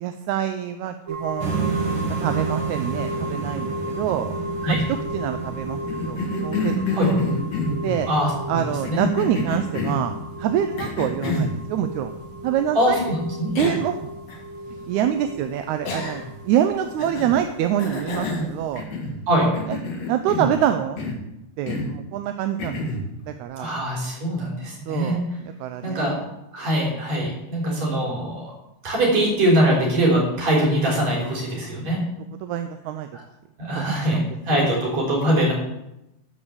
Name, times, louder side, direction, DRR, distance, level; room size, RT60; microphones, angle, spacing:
voice 1, 0.0-1.5 2.2-4.3 4.7-5.8 6.1-6.9 7.8-8.1 8.5-12.1 12.4-13.0 13.5-14.1 14.9-18.8 19.7-19.8 20.1-21.0 21.6-22.8 23.3-23.7 24.9-25.2 25.6-26.2 26.9-27.0 32.4-33.1 33.7-34.2, right 10 dB, 80° right, 8 dB, 2.0 m, -26 dB
sound 1, 1.1-18.8, equal, 25° right, 2.3 m, -35 dB
sound 2, 1.4-15.4, right 5 dB, 45° right, 1.7 m, -33 dB
Cough, 5.9-8.1 8.8-10.1 10.8-11.6 12.9-13.1 13.5-13.9 14.3-14.4 15.8-16.4 17.0-17.4 17.8-19.2 19.5-20.6 21.0-21.3 21.7-22.0 22.6-23.1, left 2 dB, 60° left, 2.9 m, -28 dB
voice 2, 8.1-9.1 12.8-13.5 19.3-19.5 23.6-25.2 25.8-26.1 26.5-28.5 28.8-32.0 33.1-33.2 33.6-35.5, right 1 dB, 65° right, -3 dB, 5.0 m, -22 dB
13.5 x 5.2 x 7.0 m, 0.88 s
omnidirectional pair, 3.4 m